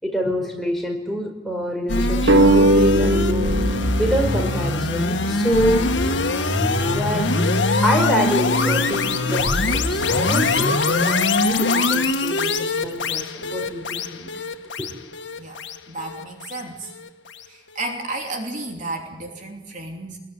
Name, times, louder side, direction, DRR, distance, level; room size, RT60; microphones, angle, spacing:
voice 1, 0.0-5.9 6.9-7.3 7.8-14.3 14.8-14.9, equal, ahead, 0 dB, 4.9 m, -26 dB
sound 1, 1.9-17.1, left 2 dB, 75° left, 1.8 m, -22 dB
sound 2, 2.3-5.5, right 1 dB, 75° right, 1.2 m, -19 dB
voice 2, 15.9-16.9 17.5-20.2, right 2 dB, 45° right, 2 dB, 3.1 m, -32 dB
25.0 x 21.5 x 9.9 m, 1.0 s
head